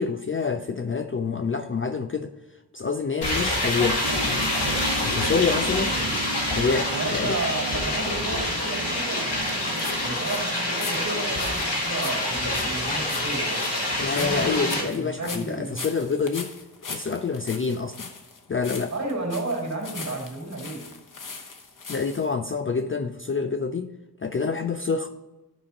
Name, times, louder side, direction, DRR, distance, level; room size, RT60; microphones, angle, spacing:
voice 1, 0.0-2.3 2.7-4.5 5.0-5.9 6.6-7.4 14.0-16.5 16.8-18.1 18.5-18.9 21.9-23.9 24.2-25.1, left 5 dB, 30° left, 8 dB, 0.4 m, -27 dB
sound 1, 3.2-14.8, left 1 dB, 75° left, 2.1 m, -26 dB
sound 2, 4.0-10.4, right 3 dB, 65° right, 0.8 m, -37 dB
voice 2, 6.9-13.7 14.2-15.8 18.9-20.9 22.6-22.8, right 2 dB, 40° right, -2 dB, 2.5 m, -33 dB
sound 3, 9.4-22.3, left 4 dB, 50° left, 1.0 m, -40 dB
12.0 x 5.6 x 2.9 m, 1.1 s
wide cardioid pair, 95°, 40 cm